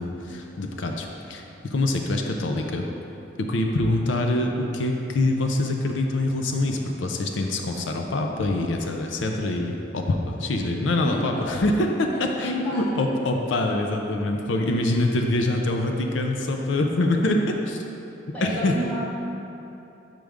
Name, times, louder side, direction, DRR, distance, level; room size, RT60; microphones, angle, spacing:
voice 1, 0.0-2.9 3.4-17.8 18.4-18.7, left 2 dB, 90° left, 3 dB, 0.5 m, -25 dB
voice 2, 11.0-11.4 12.4-13.0 18.3-19.0, right 1 dB, 10° left, -8 dB, 1.3 m, -32 dB
7.5 x 5.0 x 3.5 m, 3.0 s
head